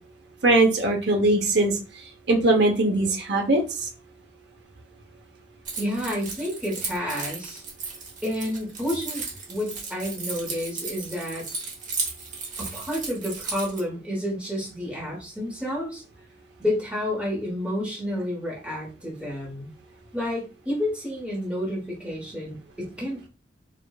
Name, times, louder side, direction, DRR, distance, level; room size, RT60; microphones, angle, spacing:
voice 1, 0.4-1.8 2.3-3.9, right 2 dB, 65° right, 2 dB, 0.8 m, -21 dB
Keys jangling, 5.7-13.8, right 4 dB, 45° right, 1.1 m, -35 dB
voice 2, 5.8-7.6 8.2-11.5 12.6-16.0 16.6-19.7 20.1-23.3, left 1 dB, 5° right, -4 dB, 1.1 m, -30 dB
4.8 x 2.5 x 2.3 m, 0.32 s
head